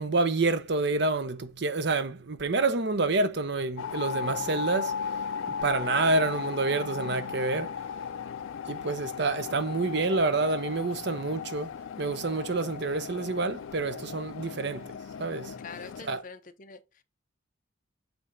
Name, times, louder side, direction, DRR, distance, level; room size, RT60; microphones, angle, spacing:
voice 1, 0.0-5.0 5.6-7.7 8.7-11.7 12.0-14.9 15.2-15.5 16.0-16.2, right 3 dB, 60° right, 0.8 m, -28 dB
sound 1, 3.8-16.0, left 6 dB, 75° left, 0.4 m, -36 dB
voice 2, 15.6-17.0, left 5 dB, 45° left, 0.7 m, -45 dB
7.8 x 2.7 x 5.7 m
head